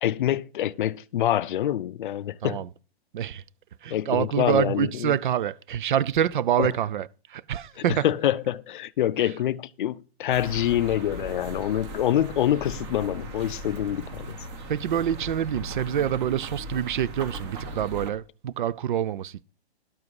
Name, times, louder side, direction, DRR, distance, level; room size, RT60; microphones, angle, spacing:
voice 1, 0.0-2.6 3.9-5.1 6.6-6.7 7.8-14.4, left 11 dB, 50° left, 0.5 m, -26 dB
voice 2, 3.8-7.1 7.3-8.0 14.7-19.4, right 10 dB, 50° right, 0.5 m, -26 dB
sound 1, 10.3-18.1, right 2 dB, 25° right, 1.2 m, -38 dB
12.0 x 7.4 x 4.7 m
hypercardioid pair, 175°, 32 cm